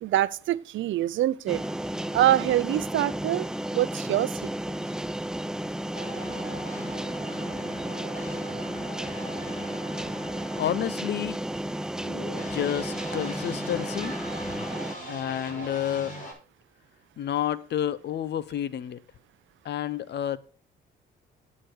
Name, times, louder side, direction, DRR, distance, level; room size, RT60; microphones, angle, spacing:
voice 1, 0.0-1.6 2.1-4.3, right 13 dB, 75° right, 0.6 m, -25 dB
sound 1, 1.5-14.9, right 1 dB, 5° right, 0.4 m, -33 dB
sound 2, 5.9-16.3, right 1 dB, 40° left, 6.3 m, -41 dB
voice 2, 10.5-11.4 12.4-14.1 14.4-14.7 15.1-16.1 17.2-19.0 19.6-20.4, left 10 dB, 60° left, 0.8 m, -30 dB
9.2 x 8.7 x 4.7 m
cardioid pair, 90°, 20 cm